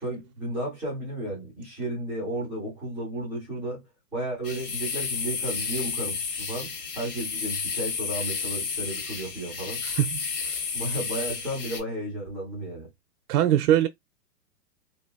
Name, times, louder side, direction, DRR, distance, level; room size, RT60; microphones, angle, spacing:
voice 1, 0.0-3.8 4.1-9.8 10.7-12.9, right 1 dB, ahead, 0.3 m, -33 dB
sound 1, 4.4-11.8, left 5 dB, 85° left, 1.6 m, -32 dB
voice 2, 9.8-10.7 13.3-13.9, right 11 dB, 70° right, 0.5 m, -23 dB
2.8 x 2.5 x 2.3 m
hypercardioid pair, 140°, 47 cm